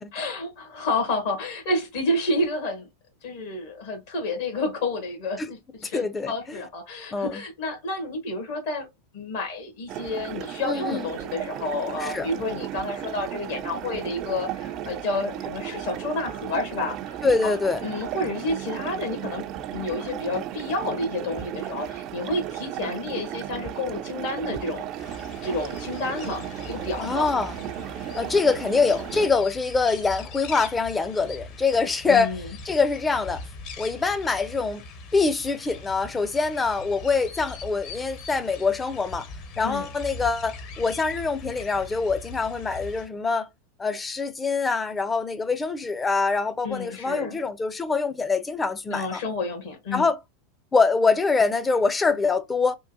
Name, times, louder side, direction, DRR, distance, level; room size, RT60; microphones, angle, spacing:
voice 1, 0.1-2.9 3.2-8.9 9.1-17.2 17.4-24.9 25.4-27.3 32.1-32.4 39.6-39.9 46.6-47.4 48.9-50.1, left 2 dB, 70° left, 1.4 m, -30 dB
voice 2, 5.8-6.6 7.1-7.4 10.6-11.1 12.0-12.3 17.2-17.8 27.0-27.6 28.2-32.3 32.7-33.4 33.8-34.8 35.1-39.3 39.6-43.5 43.8-49.2 49.9-50.2 50.7-52.8, left 4 dB, 15° left, 0.5 m, -24 dB
sound 1, 9.9-29.3, right 11 dB, 45° right, 0.4 m, -35 dB
sound 2, 25.0-43.1, left 3 dB, 50° left, 0.9 m, -41 dB
3.6 x 2.3 x 2.6 m
hypercardioid pair, 95°, 0 cm